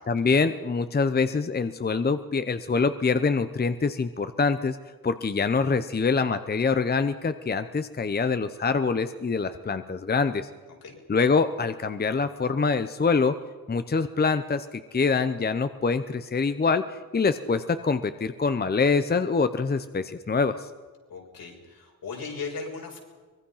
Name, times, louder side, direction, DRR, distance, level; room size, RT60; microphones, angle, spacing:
voice 1, 0.1-4.8 5.0-10.5 11.1-13.4 13.7-16.9 17.1-20.7, left 4 dB, 25° left, 11 dB, 0.8 m, -25 dB
voice 2, 21.1-23.0, left 4 dB, 75° left, 0 dB, 6.1 m, -37 dB
24.5 x 21.0 x 5.7 m, 1.4 s
wide cardioid pair, 120°, 36 cm